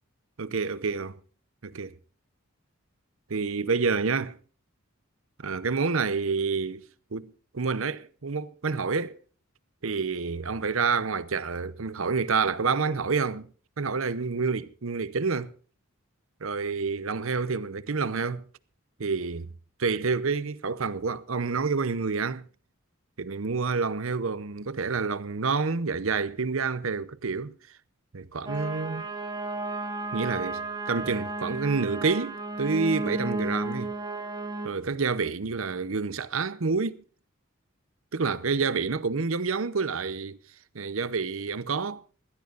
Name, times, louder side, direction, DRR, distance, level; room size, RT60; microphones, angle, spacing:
voice 1, 0.4-1.1 1.6-1.9 3.3-4.4 5.4-6.9 7.1-9.2 9.8-13.5 13.8-15.5 16.4-18.4 19.0-19.5 19.8-22.5 23.2-27.5 28.1-29.1 30.1-33.9 34.6-37.0 38.1-40.4 40.7-42.0, right 4 dB, 70° right, 0.8 m, -28 dB
sound 1, 28.5-34.7, right 2 dB, 20° right, 1.9 m, -33 dB
22.0 x 15.5 x 2.6 m
head